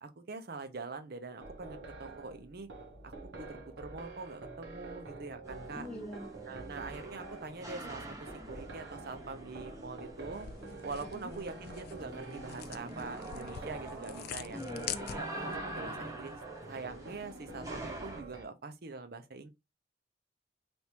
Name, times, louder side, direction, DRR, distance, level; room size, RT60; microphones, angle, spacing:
voice 1, 0.0-2.7 3.0-5.9 6.5-10.5 10.8-14.6 15.1-16.4 16.7-19.5, right 4 dB, 60° right, 0.7 m, -44 dB
sound 1, 1.4-18.4, right 3 dB, 80° right, 1.0 m, -48 dB
sound 2, 5.4-18.2, right 1 dB, 20° right, 0.9 m, -45 dB
voice 2, 5.8-6.3 11.0-11.4 14.5-15.2, left 1 dB, 5° left, 0.6 m, -44 dB
sound 3, 10.3-15.6, left 10 dB, 55° left, 0.3 m, -45 dB
3.4 x 2.6 x 2.9 m
head